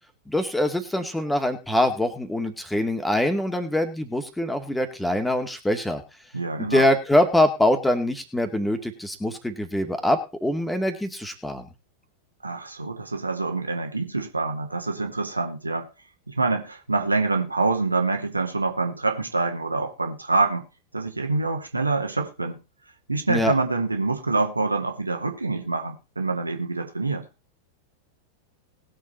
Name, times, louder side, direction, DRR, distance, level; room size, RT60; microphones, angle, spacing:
voice 1, 0.3-6.0 6.6-11.7 23.3-23.5, left 1 dB, 5° left, 2.4 m, -24 dB
voice 2, 6.3-6.9 12.4-15.9 16.3-20.7 20.9-22.6 23.1-27.3, right 3 dB, 80° right, 2.6 m, -26 dB
20.0 x 7.7 x 4.3 m
figure-of-eight pair, 90°, 0 cm